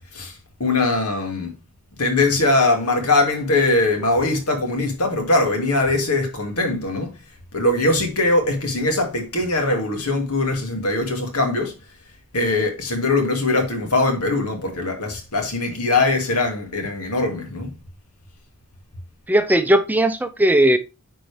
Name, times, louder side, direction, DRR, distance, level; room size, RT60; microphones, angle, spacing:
voice 1, 0.1-1.5 2.0-7.1 7.5-11.8 12.3-17.7, left 2 dB, 85° left, 2.4 m, -21 dB
voice 2, 19.3-20.8, right 1 dB, 10° right, 0.6 m, -17 dB
9.5 x 4.6 x 3.4 m
head